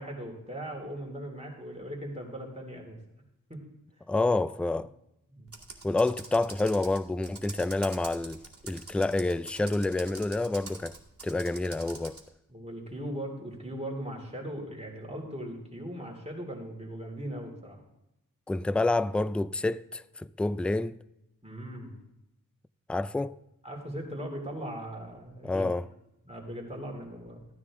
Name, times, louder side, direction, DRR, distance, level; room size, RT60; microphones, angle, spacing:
voice 1, 0.0-3.0 3.5-3.6 5.3-5.5 12.5-17.8 21.4-21.9 23.6-25.7 26.2-27.4, right 1 dB, 20° right, 3.0 m, -39 dB
voice 2, 4.1-4.9 5.8-11.0 11.2-12.2 18.5-21.0 22.9-23.4 25.4-25.9, left 2 dB, 5° left, 0.3 m, -28 dB
Computer keyboard, 5.5-12.3, right 3 dB, 40° right, 2.2 m, -45 dB
14.5 x 9.7 x 3.7 m
cardioid pair, 50°, 34 cm